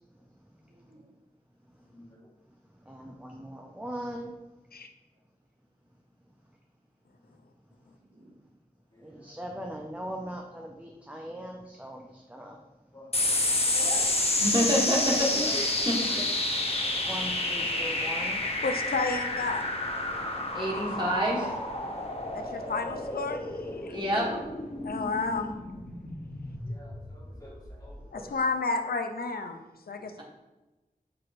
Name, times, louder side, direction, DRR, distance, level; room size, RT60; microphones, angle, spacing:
voice 1, 0.7-1.1 8.0-8.4 13.7-14.2 14.7-15.0 15.3-15.6 15.9-16.2 18.7-18.9 20.9-21.6 24.1-24.4, right 2 dB, 60° right, 0 dB, 0.8 m, -43 dB
voice 2, 1.9-2.2 8.9-9.0 12.9-13.2 16.8-16.9 26.7-27.9 30.0-30.1, left 1 dB, 25° left, -5 dB, 1.4 m, -52 dB
voice 3, 2.9-4.3 9.0-12.6 16.2-16.6 17.1-18.4 28.1-28.4, equal, 10° right, 1 dB, 0.4 m, -40 dB
sound 1, 13.1-27.9, left 2 dB, 40° left, 0.6 m, -30 dB
voice 4, 14.4-15.0 15.5-16.2 20.5-21.4 23.9-24.2, equal, 30° right, -4 dB, 1.3 m, -27 dB
voice 5, 18.6-19.6 22.3-23.7 24.9-25.5 28.1-30.2, left 3 dB, 75° left, 6 dB, 0.4 m, -31 dB
5.9 x 3.0 x 2.5 m, 1.1 s
wide cardioid pair, 55°, 16 cm